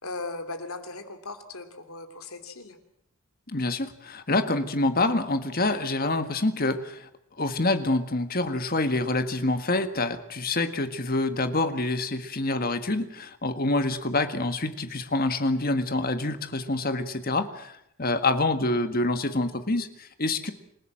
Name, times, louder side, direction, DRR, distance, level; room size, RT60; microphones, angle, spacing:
voice 1, 0.0-2.8, left 3 dB, 80° left, 8 dB, 3.0 m, -38 dB
voice 2, 3.5-7.1 7.4-20.5, left 2 dB, 45° left, 9 dB, 1.7 m, -26 dB
27.5 x 16.5 x 7.7 m, 0.77 s
head